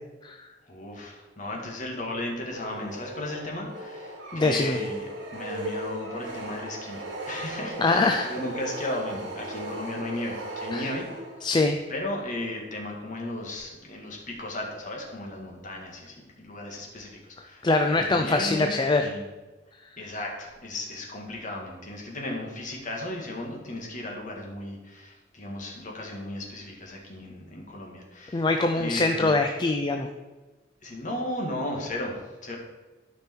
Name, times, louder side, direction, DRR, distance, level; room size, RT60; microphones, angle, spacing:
voice 1, 0.7-5.1 5.3-11.1 11.9-19.3 20.0-28.4 28.8-29.3 30.8-32.6, left 1 dB, 45° left, 0 dB, 1.9 m, -35 dB
sound 1, 2.5-11.6, right 1 dB, 70° right, 2.4 m, -37 dB
voice 2, 4.3-4.8 7.8-8.3 10.7-10.9 11.4-11.8 17.6-19.1 28.3-30.1, left 3 dB, 25° left, 5 dB, 0.4 m, -23 dB
12.5 x 5.3 x 4.5 m, 1.2 s
head